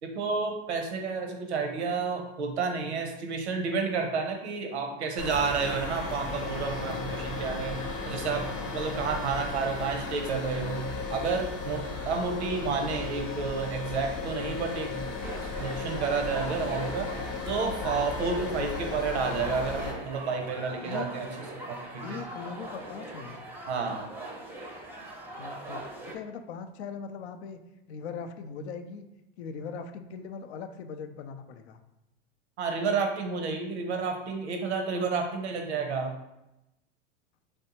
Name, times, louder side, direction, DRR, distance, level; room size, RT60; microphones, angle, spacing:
voice 1, 0.0-8.4 8.7-15.1 15.6-17.1 17.5-21.3 21.7-22.2 23.7-24.0 32.6-36.2, right 4 dB, 90° right, 3 dB, 0.6 m, -30 dB
sound 1, 5.2-19.9, left 4 dB, 45° left, 0.8 m, -35 dB
sound 2, 15.2-26.2, right 1 dB, 5° right, 0.5 m, -41 dB
voice 2, 18.5-18.8 20.8-21.1 22.0-23.4 25.3-27.6 27.9-29.1 29.4-31.8, left 5 dB, 80° left, 8 dB, 0.5 m, -40 dB
3.2 x 2.7 x 2.8 m, 0.91 s
hypercardioid pair, 105°, 33 cm